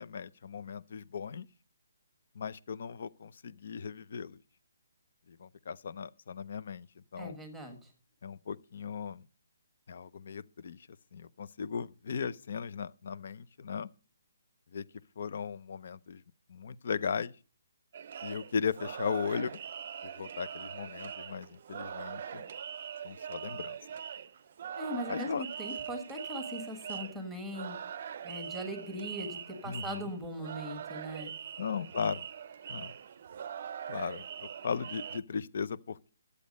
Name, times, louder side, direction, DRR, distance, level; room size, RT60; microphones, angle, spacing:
voice 1, 0.0-1.5 2.3-4.4 5.3-6.9 7.1-7.4 8.2-9.2 9.9-13.9 14.7-14.8 15.2-16.2 16.5-17.4 18.2-19.6 20.0-22.5 23.0-23.8 25.1-25.4 29.6-30.1 31.6-32.2 32.7-32.9 33.9-36.1, left 6 dB, 45° left, 0.6 m, -37 dB
voice 2, 7.2-7.9 24.8-27.8 28.2-31.3, equal, ahead, 1.6 m, -40 dB
sound 1, 17.9-35.2, right 8 dB, 40° right, 0.6 m, -42 dB
12.5 x 8.4 x 5.3 m
hypercardioid pair, 175°, 0 cm